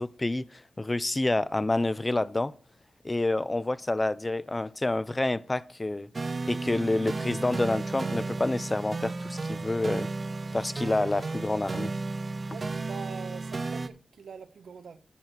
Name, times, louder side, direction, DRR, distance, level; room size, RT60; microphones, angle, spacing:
voice 1, 0.0-2.5 3.0-6.1 6.5-10.1 10.5-11.9, left 2 dB, 20° left, 0.4 m, -28 dB
sound 1, 6.1-13.9, right 3 dB, 40° right, 0.5 m, -33 dB
voice 2, 12.5-15.0, right 6 dB, 90° right, 0.8 m, -43 dB
10.5 x 6.6 x 4.5 m
wide cardioid pair, 105°, 0 cm